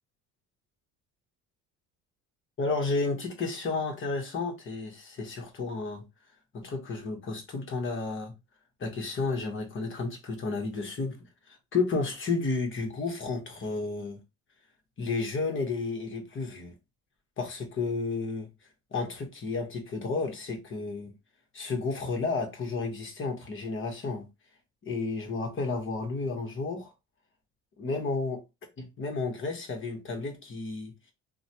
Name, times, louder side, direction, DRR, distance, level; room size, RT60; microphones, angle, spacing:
voice 1, 2.6-6.0 6.5-8.3 8.8-11.2 11.5-14.2 15.0-16.7 17.4-18.5 18.9-21.1 21.5-24.3 24.8-26.9 27.8-28.4 28.8-30.9, left 3 dB, 40° left, 1.1 m, -32 dB
3.0 x 2.2 x 2.8 m
supercardioid pair, 80°, 32 cm